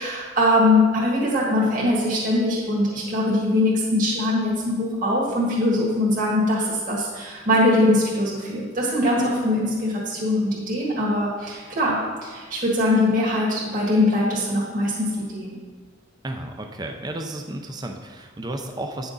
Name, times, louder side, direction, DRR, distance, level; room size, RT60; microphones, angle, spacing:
voice 1, 0.0-12.0 12.2-15.6, left 1 dB, 45° right, -5 dB, 1.7 m, -22 dB
voice 2, 16.2-19.1, right 1 dB, 20° right, 4 dB, 0.6 m, -33 dB
9.6 x 6.1 x 3.9 m, 1.5 s
head